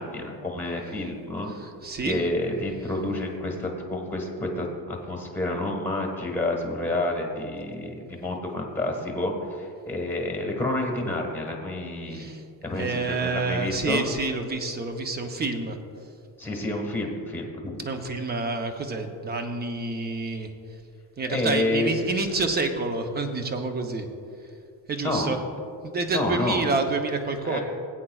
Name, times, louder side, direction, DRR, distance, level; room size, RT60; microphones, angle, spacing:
voice 1, 0.0-1.5 2.0-12.3 12.6-14.0 16.4-17.8 21.3-22.1 25.0-25.3 26.1-26.7 27.4-27.6, left 2 dB, 5° left, 0 dB, 1.4 m, -29 dB
voice 2, 1.6-2.2 12.1-12.4 12.8-15.8 17.8-20.5 21.2-24.1 24.9-25.4 25.8-27.6, right 3 dB, 20° right, 6 dB, 0.7 m, -28 dB
16.5 x 8.8 x 2.3 m, 2.4 s
cardioid pair, 150°, 44 cm